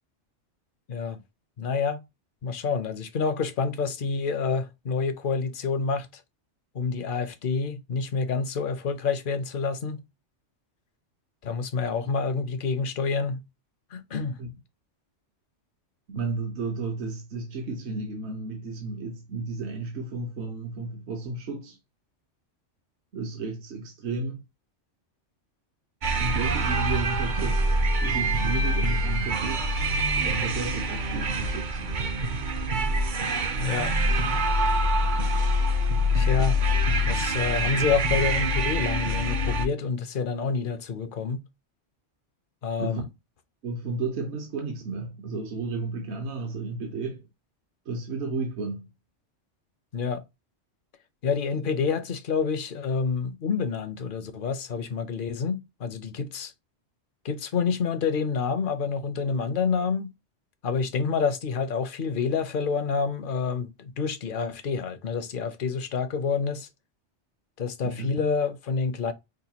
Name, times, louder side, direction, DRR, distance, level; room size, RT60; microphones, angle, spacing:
voice 1, 0.9-1.2 1.6-2.0 2.4-6.2 6.7-10.0 11.4-13.4 13.9-14.4 33.6-33.9 36.1-36.6 37.0-41.4 42.6-43.0 49.9-50.2 51.2-56.5 57.2-60.1 60.6-66.7 67.6-69.1, left 5 dB, 55° left, 0.7 m, -28 dB
voice 2, 16.1-21.8 23.1-24.4 26.2-27.6 28.0-32.0 42.8-43.0 43.6-47.2 47.9-48.9 67.8-68.1, right 3 dB, 65° right, 1.0 m, -33 dB
sound 1, 26.0-39.7, equal, 50° right, 0.7 m, -25 dB
4.9 x 2.2 x 2.8 m
omnidirectional pair, 1.2 m